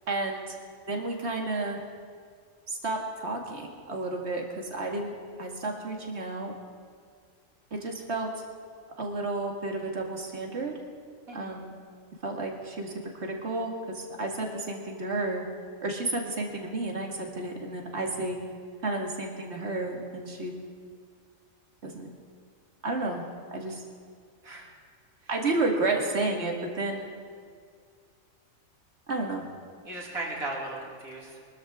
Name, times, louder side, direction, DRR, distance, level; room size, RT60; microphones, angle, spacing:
voice 1, 0.1-0.5 0.9-1.8 2.7-6.5 7.7-8.3 9.0-10.7 11.3-11.7 12.2-15.4 15.8-18.4 18.8-20.5 21.8-22.1 22.8-23.3 23.5-23.8 25.3-27.1 29.1-29.4, right 2 dB, 50° right, 1 dB, 2.2 m, -31 dB
voice 2, 29.8-31.4, right 2 dB, 75° right, -3 dB, 3.3 m, -36 dB
23.5 x 13.5 x 3.7 m, 2.1 s
omnidirectional pair, 1.5 m